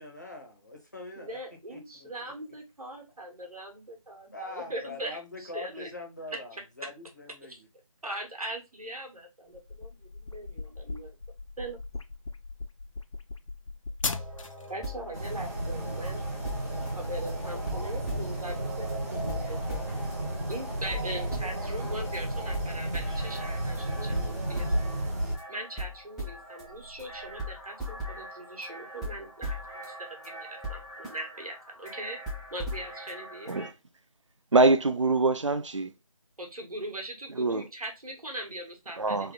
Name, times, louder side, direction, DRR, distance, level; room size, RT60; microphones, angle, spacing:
voice 1, 0.0-1.4 1.7-2.3 4.3-7.7, left 2 dB, 30° left, 0.7 m, -43 dB
voice 2, 1.2-5.9 8.0-11.2 11.6-11.8 14.7-16.2 17.0-19.8 20.5-24.9 25.5-32.2 32.5-33.5 36.4-39.3, right 1 dB, 75° right, 1.4 m, -40 dB
sound 1, 9.5-14.7, left 3 dB, 60° left, 0.4 m, -38 dB
sound 2, 14.1-33.7, equal, ahead, 0.4 m, -40 dB
sound 3, 15.1-25.3, right 1 dB, 25° right, 0.9 m, -33 dB
voice 3, 34.5-35.9 37.4-37.6 39.0-39.3, right 3 dB, 55° right, 0.4 m, -24 dB
3.3 x 2.3 x 3.6 m
figure-of-eight pair, 175°, 19 cm